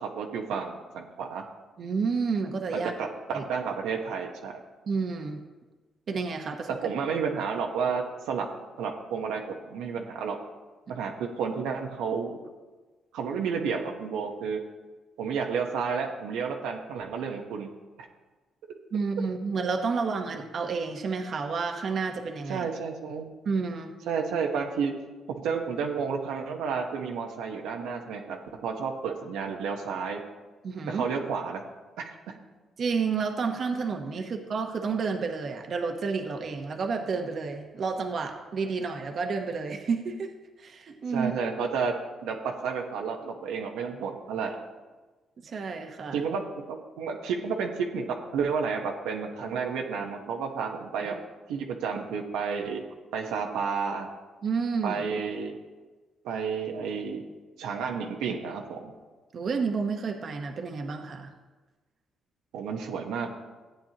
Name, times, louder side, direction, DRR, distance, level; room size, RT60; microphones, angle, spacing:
voice 1, 0.0-1.4 3.0-4.6 6.7-8.5 8.8-10.4 10.9-12.4 13.1-14.6 15.2-17.7 22.5-23.3 24.1-24.9 25.3-30.2 30.9-31.6 32.0-32.3 41.1-41.9 42.2-42.4 42.6-44.5 46.1-46.4 46.7-51.2 51.5-52.8 53.1-54.1 54.8-55.5 56.2-57.2 57.6-58.9 62.5-63.3, right 6 dB, 90° right, 1 dB, 1.1 m, -31 dB
voice 2, 1.8-2.9 3.3-3.4 4.9-5.4 6.1-6.8 18.9-22.7 23.4-23.9 30.6-31.1 32.8-40.3 40.6-41.3 45.4-46.3 51.1-51.2 54.4-55.0 59.3-61.3, right 5 dB, 55° right, 4 dB, 1.0 m, -30 dB
14.5 x 8.8 x 2.9 m, 1.3 s
cardioid pair, 90°, 0 cm